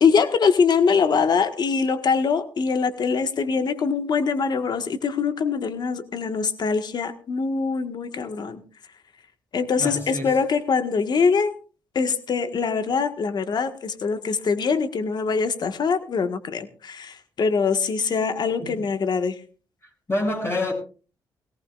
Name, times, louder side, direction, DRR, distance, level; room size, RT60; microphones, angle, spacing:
voice 1, 0.0-8.6 9.5-11.5 12.0-19.4, left 5 dB, 55° left, 1.6 m, -23 dB
voice 2, 9.8-10.3 18.6-18.8 20.1-20.7, left 2 dB, 30° left, 7.2 m, -27 dB
19.0 x 17.5 x 2.5 m
cardioid pair, 75°, 8 cm